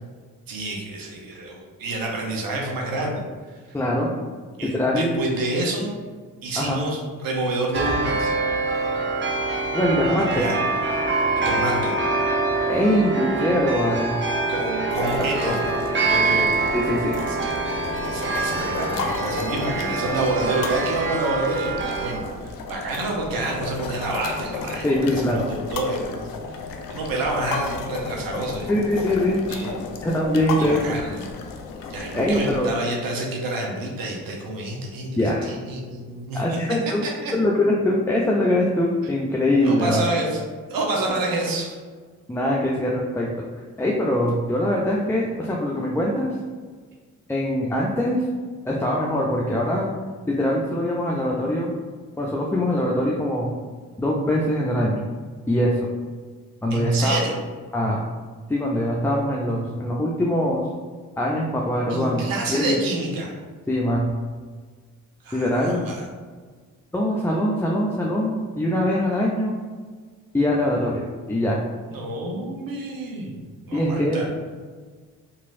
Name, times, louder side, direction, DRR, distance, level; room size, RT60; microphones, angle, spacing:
voice 1, 0.5-3.2 4.6-5.9 6.4-8.3 10.1-10.5 11.4-11.9 14.5-15.6 15.9-16.5 17.3-17.6 18.0-26.3 26.9-28.7 29.5-29.9 30.6-31.3 31.9-36.6 37.0-37.3 39.6-40.4 40.7-41.7 56.7-57.4 61.9-63.3 65.2-66.1 71.9-73.4 73.6-74.3, right 2 dB, 65° right, -1 dB, 0.8 m, -28 dB
voice 2, 3.7-4.1 4.6-5.2 6.6-6.8 9.7-10.5 12.7-14.1 15.0-15.1 15.4-15.6 16.7-17.2 24.8-25.5 28.7-29.4 30.0-30.8 32.1-32.7 35.2-35.5 36.3-37.0 37.3-40.1 42.3-43.3 43.8-46.3 47.3-48.2 48.7-49.9 50.3-51.7 52.2-53.5 54.0-55.0 55.5-55.9 56.6-57.2 57.7-58.0 58.5-60.6 61.2-62.2 62.5-62.8 63.7-64.1 65.3-65.8 66.9-69.6 70.3-71.6 73.7-74.2, left 1 dB, 5° left, -3 dB, 0.4 m, -22 dB
sound 1, 7.7-22.1, right 3 dB, 30° right, 0.7 m, -25 dB
sound 2, 14.9-32.6, left 4 dB, 60° left, 0.5 m, -33 dB
3.0 x 2.6 x 2.5 m, 1.5 s
hypercardioid pair, 45°, 38 cm